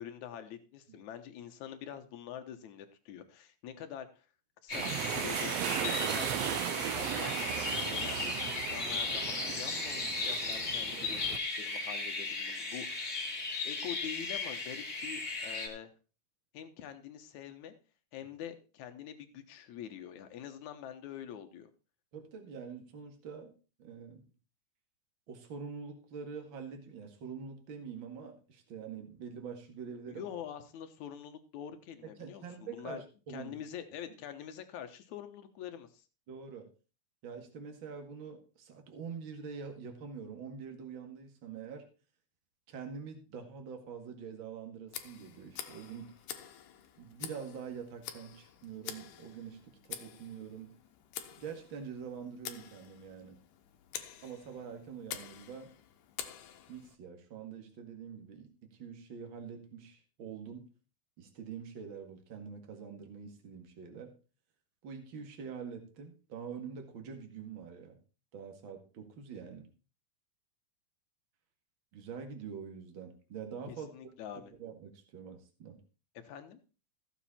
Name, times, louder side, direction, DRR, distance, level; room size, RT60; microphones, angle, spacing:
voice 1, 0.0-4.3 4.6-7.4 7.8-13.2 13.6-15.9 16.5-17.7 18.1-21.7 30.1-33.0 33.3-36.0 73.7-74.5 76.2-76.6, left 9 dB, 70° left, 7 dB, 2.5 m, -45 dB
sound 1, 4.7-15.7, left 3 dB, 30° left, 2.7 m, -36 dB
sound 2, 4.7-11.4, right 11 dB, 75° right, 1.6 m, -36 dB
voice 2, 22.1-23.5 23.8-24.2 25.3-30.2 32.0-33.5 36.3-36.7 37.2-41.9 42.7-46.1 47.0-49.6 49.9-50.7 51.4-53.4 54.2-55.7 56.7-60.7 61.2-64.1 64.8-68.0 68.3-69.7 71.9-73.9 74.6-75.8, right 6 dB, 45° right, 4 dB, 2.4 m, -45 dB
Tick, 44.9-57.0, left 10 dB, 90° left, 2.5 m, -47 dB
14.5 x 7.3 x 4.3 m, 0.34 s
omnidirectional pair, 3.5 m